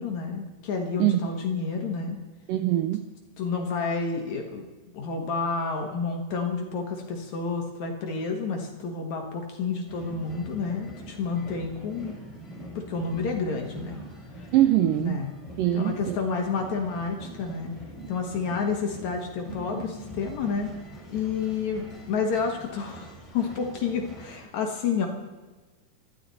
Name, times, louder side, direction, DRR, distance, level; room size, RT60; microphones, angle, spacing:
voice 1, 0.0-2.2 3.4-4.6 4.9-12.2 12.8-14.0 15.0-15.3 15.7-17.7 18.1-20.7 21.1-25.1, left 5 dB, 60° left, 2 dB, 2.3 m, -30 dB
voice 2, 2.5-3.1 14.5-15.2 15.6-16.2, right 13 dB, 80° right, 9 dB, 1.9 m, -23 dB
sound 1, 9.9-24.4, equal, 15° left, 4.2 m, -44 dB
24.5 x 13.5 x 4.1 m, 1.3 s
omnidirectional pair, 4.6 m